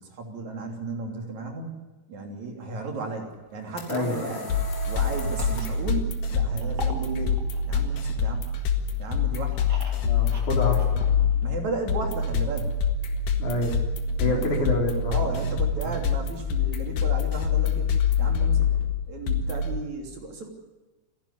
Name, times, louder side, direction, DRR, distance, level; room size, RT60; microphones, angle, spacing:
voice 1, 0.0-1.7 2.1-4.5 4.9-7.4 7.7-8.5 9.0-9.7 10.7-10.8 11.4-12.7 14.2-14.7 15.1-17.9 18.2-18.8 19.1-20.5, right 3 dB, 60° right, 3 dB, 4.3 m, -34 dB
sound 1, 3.3-5.9, left 3 dB, 35° left, 3.9 m, -39 dB
voice 2, 3.9-4.3 10.0-11.0 13.4-13.8 14.2-15.5 15.8-15.9, left 2 dB, 70° left, 0 dB, 5.6 m, -28 dB
sound 2, 4.5-19.7, left 6 dB, 85° left, 3.3 m, -25 dB
sound 3, 6.6-8.6 9.1-11.7 12.0-12.1 12.3-12.4, right 1 dB, 35° right, 3.0 m, -42 dB
29.0 x 11.5 x 10.0 m, 1.2 s
omnidirectional pair, 3.7 m